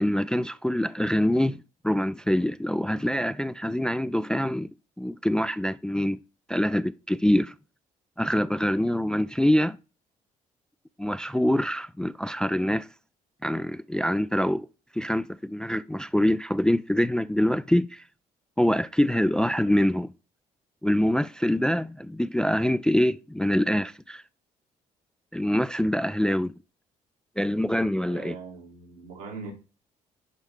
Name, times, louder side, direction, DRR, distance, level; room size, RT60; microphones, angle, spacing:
voice 1, 0.0-4.7 5.0-6.2 6.5-7.5 8.2-9.8 11.0-12.9 13.4-14.7 14.9-18.0 18.6-20.1 20.8-24.2 25.3-26.5 27.4-28.4, left 1 dB, 5° left, 0.3 m, -25 dB
voice 2, 28.0-29.5, right 4 dB, 75° right, 2.1 m, -41 dB
7.6 x 5.3 x 3.6 m
figure-of-eight pair, 45°, 19 cm